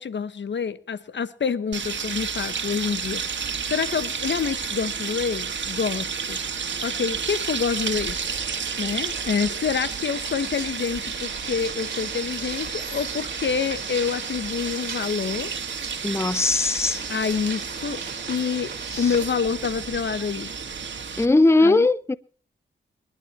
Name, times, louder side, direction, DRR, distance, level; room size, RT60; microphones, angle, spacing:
voice 1, 0.0-6.4 6.8-8.2 8.8-15.5 17.1-18.0 18.3-18.7 19.0-20.5 21.6-21.9, left 6 dB, 70° left, 1.1 m, -27 dB
sound 1, 1.7-21.3, right 6 dB, 70° right, 2.0 m, -31 dB
sound 2, 7.7-19.3, right 5 dB, 50° right, 3.3 m, -39 dB
voice 2, 16.0-17.0 18.9-19.1 21.2-22.1, left 2 dB, 15° left, 0.6 m, -19 dB
22.0 x 12.0 x 4.3 m
cardioid pair, 70°, 19 cm